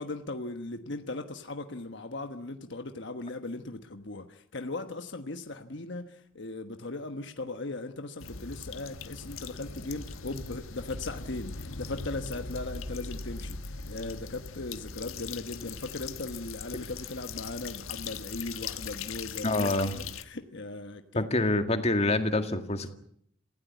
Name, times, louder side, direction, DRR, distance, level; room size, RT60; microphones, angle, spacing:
voice 1, 0.0-21.3, left 2 dB, 60° left, 7 dB, 1.3 m, -38 dB
sound 1, 8.2-20.2, left 5 dB, 90° left, 1.4 m, -40 dB
voice 2, 19.4-19.9 21.2-22.9, left 2 dB, 30° left, 7 dB, 2.0 m, -26 dB
27.0 x 16.0 x 9.3 m, 0.70 s
head